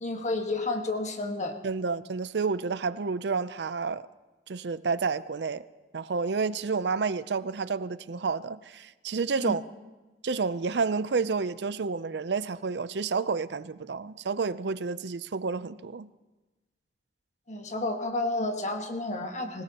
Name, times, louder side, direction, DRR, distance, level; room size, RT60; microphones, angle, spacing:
voice 1, 0.0-1.6 9.4-9.6 17.5-19.6, left 2 dB, 45° left, 1.5 m, -31 dB
voice 2, 1.6-4.1 4.5-5.6 5.9-9.6 10.2-16.1, right 4 dB, 70° right, 0.5 m, -30 dB
25.5 x 17.0 x 2.9 m
head